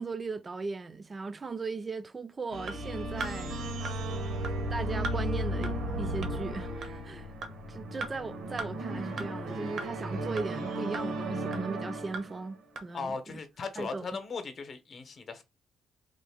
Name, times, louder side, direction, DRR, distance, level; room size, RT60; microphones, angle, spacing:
voice 1, 0.0-3.6 4.7-7.3 7.7-13.4 13.8-14.1, right 4 dB, 30° right, 0.4 m, -38 dB
sound 1, 2.5-12.6, right 1 dB, 85° right, 1.3 m, -35 dB
sound 2, 2.7-2.8 3.2-3.3 3.8-3.9 4.4-4.5 5.0-5.2 5.6-5.7 6.2-6.3 6.8-6.9 7.4-7.5 8.0-8.1 8.6-8.7 9.2-9.3 9.8-9.9 10.4-10.5 10.9-11.0 11.5-11.6 12.1-12.2 12.8-12.9, right 3 dB, 65° right, 0.9 m, -37 dB
sound 3, 2.8-10.7, left 7 dB, 90° left, 0.4 m, -47 dB
voice 2, 12.9-15.4, left 4 dB, 50° left, 0.8 m, -38 dB
3.6 x 2.1 x 3.5 m
cardioid pair, 90°, 0 cm